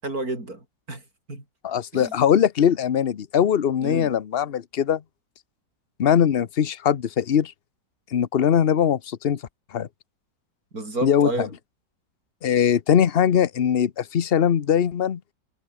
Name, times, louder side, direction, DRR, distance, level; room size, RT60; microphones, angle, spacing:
voice 1, 0.0-1.0 1.3-1.4 1.9-2.2 3.8-4.2 10.7-11.5, right 2 dB, 50° right, 7.3 m, -31 dB
voice 2, 1.6-5.0 6.0-7.5 8.1-9.4 9.7-9.9 11.0-11.3 12.4-15.2, left 8 dB, 45° left, 0.8 m, -21 dB
omnidirectional pair, 2.0 m